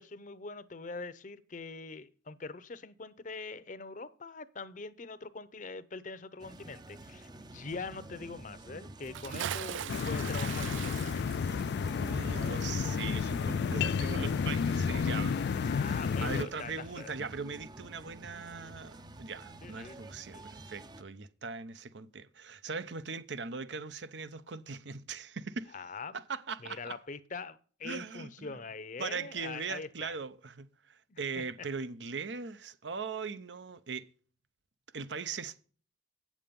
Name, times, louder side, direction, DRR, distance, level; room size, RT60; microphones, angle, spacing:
voice 1, 0.0-11.3 15.1-17.1 19.6-20.0 20.3-20.4 25.7-26.2 26.6-30.2 31.1-31.4, left 4 dB, 45° left, 0.7 m, -43 dB
sound 1, 6.4-21.0, right 2 dB, 25° right, 0.6 m, -49 dB
Bathtub (filling or washing) / Splash splatter, 9.0-14.0 14.3-14.4, right 10 dB, 90° right, 0.4 m, -41 dB
sound 2, 9.9-16.4, left 6 dB, 60° left, 0.3 m, -31 dB
voice 2, 11.9-15.4 15.8-25.7 26.3-27.0 27.8-28.6 29.0-34.1 34.9-35.5, right 5 dB, 75° right, 0.8 m, -40 dB
8.7 x 7.3 x 5.2 m
head